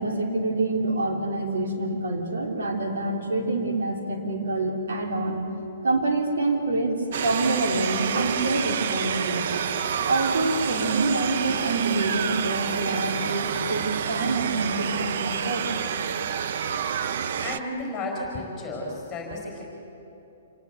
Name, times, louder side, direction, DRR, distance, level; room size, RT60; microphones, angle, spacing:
voice 1, 0.0-5.4 5.8-9.6 10.0-15.7, right 2 dB, 85° right, 2 dB, 3.6 m, -26 dB
sound 1, 7.1-17.6, right 8 dB, 40° right, 0.6 m, -28 dB
voice 2, 17.4-19.6, left 2 dB, 5° left, -1 dB, 4.6 m, -33 dB
27.0 x 18.5 x 8.1 m, 3.0 s
hypercardioid pair, 180°, 0 cm